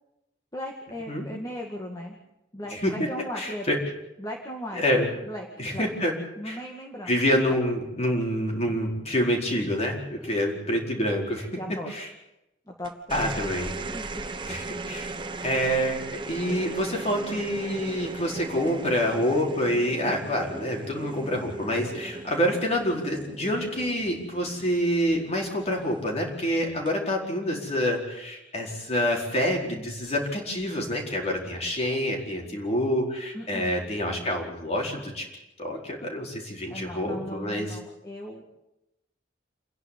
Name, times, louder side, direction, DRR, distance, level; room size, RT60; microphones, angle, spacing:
voice 1, 0.5-2.2 2.5-3.7 4.2-4.8 5.2-5.5 5.7-5.9 6.4-7.1 7.5-7.6 10.2-10.6 11.6-11.9 12.7-12.9 13.9-14.5 33.3-33.7 36.7-38.4, equal, 20° left, 0 dB, 2.1 m, -37 dB
voice 2, 3.4-3.7 4.7-5.1 5.6-6.1 6.4-6.6 7.1-11.5 11.9-12.1 13.1-13.7 14.4-15.1 15.4-35.3 35.6-37.8, equal, 40° left, 0 dB, 4.8 m, -27 dB
sound 1, 12.8-25.5 26.7-27.1, right 3 dB, 30° right, 1.2 m, -37 dB
28.5 x 11.0 x 10.0 m, 0.92 s
head